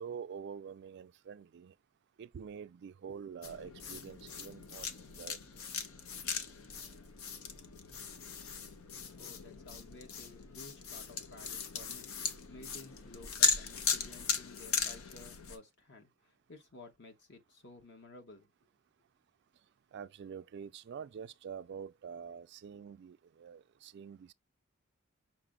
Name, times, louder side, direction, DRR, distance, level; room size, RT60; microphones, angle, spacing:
voice 1, 0.0-1.7 2.2-4.9 5.2-5.4 19.9-24.3, right 7 dB, 55° right, 0.3 m, -46 dB
sound 1, 3.4-15.6, left 5 dB, 85° left, 0.6 m, -37 dB
voice 2, 9.1-12.1 12.5-18.5, left 2 dB, 55° left, 1.0 m, -54 dB
5.8 x 2.0 x 3.6 m
head